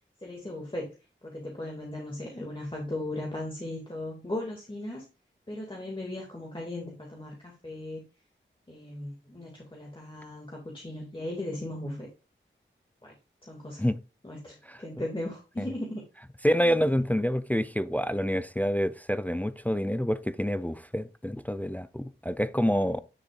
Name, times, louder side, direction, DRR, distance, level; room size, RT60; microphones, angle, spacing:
voice 1, 0.2-0.9 1.2-5.0 5.5-8.0 8.7-12.1 13.0-13.1 13.5-13.9 14.2-16.0 16.6-16.8, left 1 dB, 25° left, 2.2 m, -37 dB
voice 2, 16.4-23.0, equal, 10° left, 0.4 m, -27 dB
9.7 x 6.6 x 2.4 m
wide cardioid pair, 55°, 21 cm